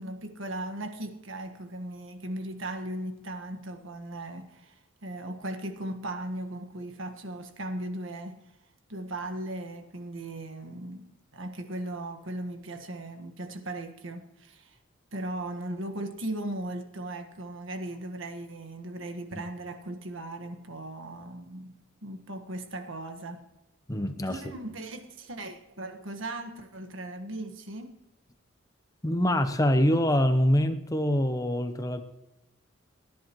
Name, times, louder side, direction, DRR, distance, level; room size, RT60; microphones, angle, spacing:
voice 1, 0.0-8.4 8.9-14.8 15.1-23.5 24.3-28.0, right 1 dB, 70° right, 1.5 m, -38 dB
voice 2, 23.9-24.4 29.0-32.0, equal, 15° left, 0.8 m, -25 dB
30.0 x 10.5 x 3.1 m
head